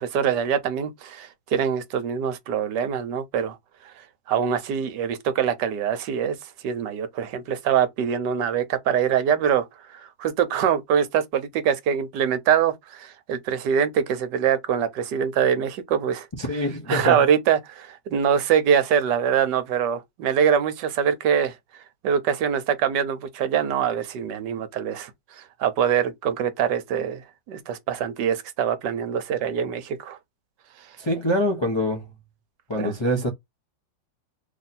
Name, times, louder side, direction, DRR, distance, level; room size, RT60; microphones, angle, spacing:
voice 1, 0.0-3.6 3.8-16.3 16.9-30.2 30.8-31.0 32.8-32.9, right 8 dB, 80° right, 1.3 m, -24 dB
voice 2, 16.4-17.2 31.0-32.1 32.7-33.3, equal, 30° left, 0.5 m, -24 dB
3.2 x 2.7 x 4.1 m
omnidirectional pair, 1.9 m